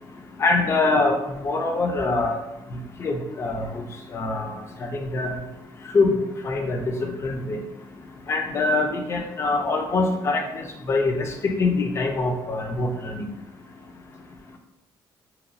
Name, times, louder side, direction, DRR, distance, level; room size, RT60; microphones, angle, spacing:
voice 1, 0.4-1.1 1.4-2.3 3.0-3.8 4.1-5.3 5.9-6.1 6.4-7.6 8.3-13.3, left 3 dB, 30° left, 4 dB, 0.4 m, -24 dB
2.9 x 2.3 x 2.5 m, 0.92 s
cardioid pair, 160°, 9 cm